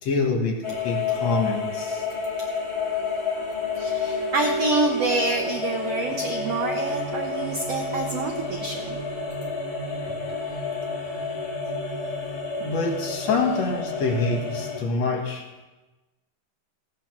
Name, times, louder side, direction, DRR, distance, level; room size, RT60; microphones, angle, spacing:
voice 1, 0.0-2.0 12.6-15.5, left 3 dB, 55° left, 2 dB, 2.5 m, -26 dB
sound 1, 0.6-14.8, left 4 dB, 35° left, 1.7 m, -29 dB
voice 2, 3.7-9.0, right 3 dB, 75° right, 3 dB, 1.4 m, -27 dB
16.0 x 9.6 x 6.0 m, 1.1 s
omnidirectional pair, 4.1 m